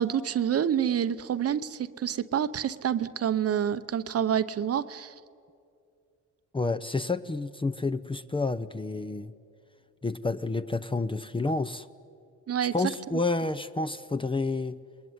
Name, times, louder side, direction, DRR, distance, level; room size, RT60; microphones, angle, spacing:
voice 1, 0.0-5.1 12.5-12.7, right 9 dB, 50° right, 12 dB, 0.9 m, -27 dB
voice 2, 6.5-9.3 10.0-11.9 12.7-14.8, left 3 dB, 15° left, 12 dB, 0.7 m, -29 dB
29.5 x 20.5 x 9.6 m, 2.4 s
cardioid pair, 90°, 30 cm